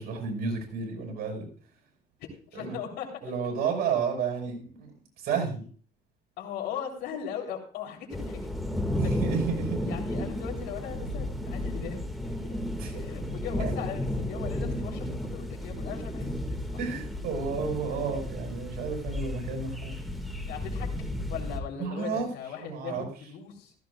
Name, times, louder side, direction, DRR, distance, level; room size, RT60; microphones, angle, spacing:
voice 1, 0.0-1.5 2.5-2.8 3.2-4.9 5.2-5.6 8.9-9.9 12.8-12.9 13.6-13.7 16.8-20.0 21.8-22.3 22.6-23.1, right 5 dB, 70° right, 2 dB, 5.2 m, -31 dB
voice 2, 2.2-3.1 6.4-8.4 8.8-9.2 9.8-12.6 12.9-16.6 17.9-18.2 20.5-20.9 21.3-23.7, left 8 dB, 85° left, 1 dB, 3.5 m, -39 dB
sound 1, 8.1-21.6, left 1 dB, ahead, 1.9 m, -33 dB
15.5 x 14.0 x 2.4 m, 0.43 s
cardioid pair, 110°, 17 cm